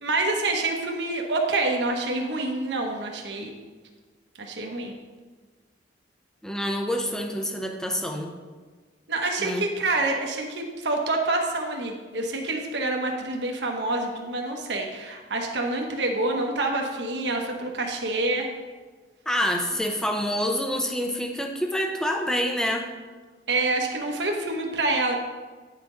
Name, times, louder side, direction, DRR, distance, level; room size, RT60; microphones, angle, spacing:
voice 1, 0.0-3.5 4.4-4.9 9.1-18.5 23.5-25.1, right 2 dB, 75° right, 1 dB, 1.1 m, -27 dB
voice 2, 6.4-8.3 9.4-9.6 19.3-22.9, equal, 5° left, 2 dB, 0.7 m, -27 dB
9.5 x 5.8 x 3.8 m, 1.4 s
head